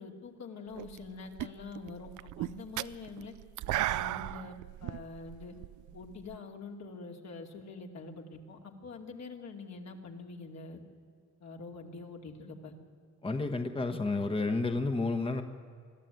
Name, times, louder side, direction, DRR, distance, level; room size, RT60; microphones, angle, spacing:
voice 1, 0.0-3.3 3.7-5.5 5.9-10.8 11.4-12.7, left 4 dB, 60° left, 2 dB, 2.7 m, -45 dB
sound 1, 0.8-1.1 1.4-6.4, right 15 dB, 75° right, 0.5 m, -36 dB
voice 2, 13.2-15.4, left 3 dB, 20° left, 6 dB, 1.2 m, -31 dB
22.0 x 13.5 x 9.4 m, 2.1 s
cardioid pair, 90°, 30 cm